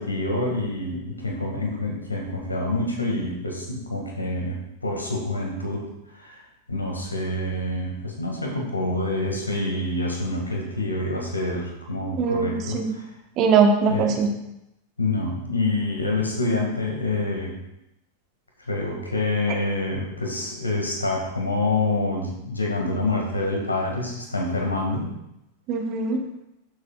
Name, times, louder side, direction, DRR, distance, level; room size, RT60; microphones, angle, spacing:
voice 1, 0.0-6.4 6.7-13.1 13.8-14.1 15.0-17.6 18.7-25.1, left 2 dB, 80° left, 0 dB, 1.9 m, -27 dB
voice 2, 12.2-12.9 13.4-14.3 25.7-26.2, right 5 dB, 40° right, 4 dB, 1.2 m, -21 dB
12.0 x 7.3 x 2.4 m, 0.85 s
figure-of-eight pair, 90°, 0 cm